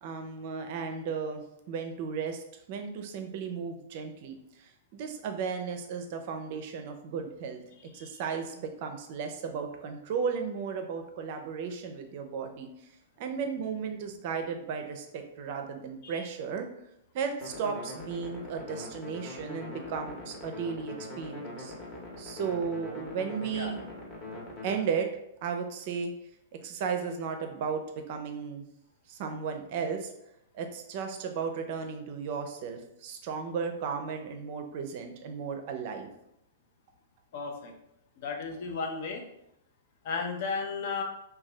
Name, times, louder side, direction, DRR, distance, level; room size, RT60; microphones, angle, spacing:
voice 1, 0.0-7.6 7.9-12.7 13.2-16.7 17.1-21.7 22.2-24.0 24.6-25.1 25.4-26.1 26.6-28.7 29.1-30.1 30.5-36.1, right 6 dB, 50° right, 5 dB, 0.4 m, -35 dB
sound 1, 17.4-24.8, left 1 dB, 25° left, 0.9 m, -42 dB
voice 2, 37.3-37.7 38.2-39.2 40.0-41.0, left 4 dB, 55° left, 3 dB, 0.6 m, -34 dB
2.6 x 2.2 x 3.2 m, 0.81 s
hypercardioid pair, 110°, 0 cm